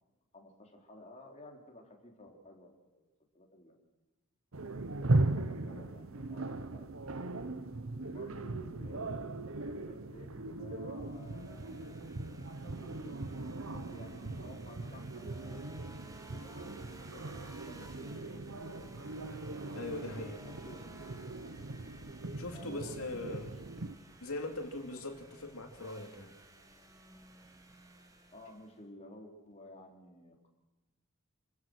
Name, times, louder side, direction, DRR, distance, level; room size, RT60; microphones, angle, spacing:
voice 1, 0.3-3.0 3.3-3.7 4.8-7.4 7.9-13.1 13.7-14.2 14.4-15.7 16.1-18.9 20.1-20.9 22.5-23.5 28.3-30.5, left 1 dB, 30° left, 1 dB, 3.8 m, -54 dB
sound 1, 4.5-24.0, right 2 dB, 60° right, 1.0 m, -38 dB
sound 2, 11.0-28.8, right 1 dB, 15° right, 1.6 m, -55 dB
voice 2, 19.7-20.5 22.4-23.5 24.2-26.3, left 2 dB, 75° left, 4 dB, 2.9 m, -41 dB
29.0 x 15.0 x 6.3 m, 1.1 s
head